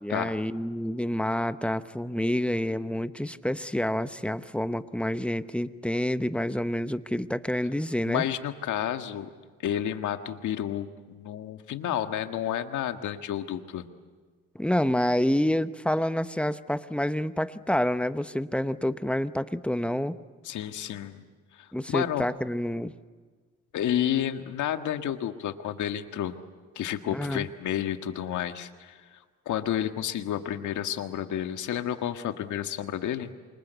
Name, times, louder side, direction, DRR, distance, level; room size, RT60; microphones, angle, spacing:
voice 1, 0.0-8.2 14.5-20.2 21.7-22.9 27.1-27.5, left 1 dB, 5° left, 11 dB, 1.0 m, -28 dB
voice 2, 8.0-9.3 9.6-13.9 20.4-21.2 21.5-22.3 23.7-26.4 26.8-29.2 29.5-33.3, left 10 dB, 75° left, 7 dB, 1.7 m, -31 dB
28.0 x 25.0 x 8.2 m, 1.5 s
cardioid pair, 90°, 30 cm